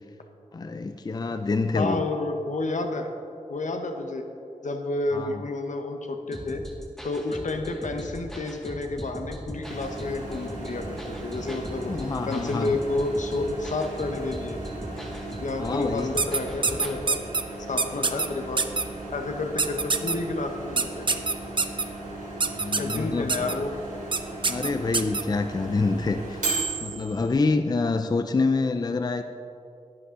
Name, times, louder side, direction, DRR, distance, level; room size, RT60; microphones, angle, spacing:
voice 1, 0.5-2.1 5.1-5.4 11.9-12.7 15.6-16.2 22.5-23.5 24.5-26.4 26.8-29.2, left 3 dB, 30° left, 8 dB, 0.4 m, -27 dB
voice 2, 1.8-3.1 3.5-4.2 4.6-6.6 7.0-11.9 12.3-14.6 15.4-17.2 17.7-18.7 19.1-21.2 22.8-23.8, left 2 dB, 70° left, 5 dB, 0.9 m, -30 dB
sound 1, 6.3-17.0, equal, 5° left, 1.3 m, -40 dB
Microwave oven, 9.6-27.4, right 2 dB, 75° right, 2.8 m, -36 dB
sound 2, 16.2-17.4 17.8-18.3 18.6-18.8 19.6-20.1 20.8-21.8 22.4-23.0 23.3-23.5 24.1-24.2 24.4-25.2, right 4 dB, 40° right, 0.5 m, -24 dB
11.0 x 10.0 x 3.7 m, 2.6 s
wide cardioid pair, 95°, 13 cm